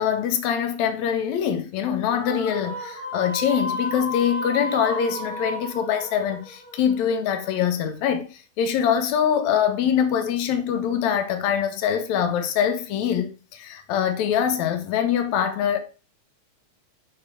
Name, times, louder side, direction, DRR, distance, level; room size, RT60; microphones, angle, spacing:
voice 1, 0.0-8.3 8.6-15.8, left 8 dB, 75° left, 2.3 m, -24 dB
sound 1, 2.1-7.5, left 1 dB, 35° left, 2.2 m, -33 dB
6.9 x 6.5 x 4.8 m
omnidirectional pair, 3.4 m